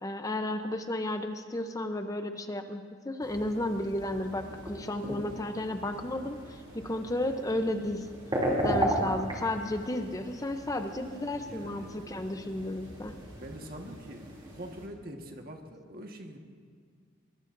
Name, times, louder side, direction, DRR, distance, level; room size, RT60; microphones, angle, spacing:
voice 1, 0.0-8.1 8.6-13.1, left 1 dB, 20° left, 7 dB, 0.7 m, -33 dB
sound 1, 3.2-14.9, right 1 dB, 25° right, 2.8 m, -36 dB
voice 2, 11.1-11.9 13.3-16.4, right 1 dB, 50° right, 3 dB, 1.5 m, -44 dB
22.5 x 22.0 x 2.6 m, 2.1 s
head